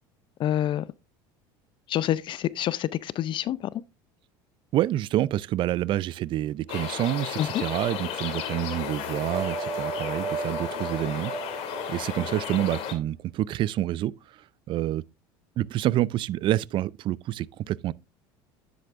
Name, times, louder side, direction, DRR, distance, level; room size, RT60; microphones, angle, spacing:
voice 1, 0.4-0.9 1.9-3.7 7.4-7.6, left 11 dB, 45° left, 0.4 m, -27 dB
voice 2, 4.7-14.1 14.7-15.0 15.6-17.9, right 13 dB, 45° right, 0.4 m, -28 dB
sound 1, 6.7-12.9, left 9 dB, 65° left, 2.0 m, -34 dB
sound 2, 9.3-13.0, right 5 dB, 25° right, 4.6 m, -35 dB
9.8 x 7.9 x 2.5 m
supercardioid pair, 90°, 11 cm